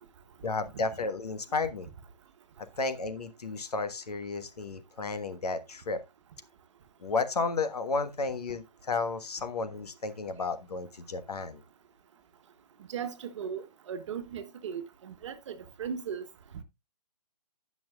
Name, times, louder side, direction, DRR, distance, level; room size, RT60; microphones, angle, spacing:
voice 1, 0.4-1.9 2.6-6.0 7.0-11.6, left 3 dB, 70° left, 1.5 m, -32 dB
voice 2, 12.9-16.2, right 7 dB, 45° right, 1.3 m, -37 dB
17.0 x 6.1 x 2.4 m
figure-of-eight pair, 140°, 21 cm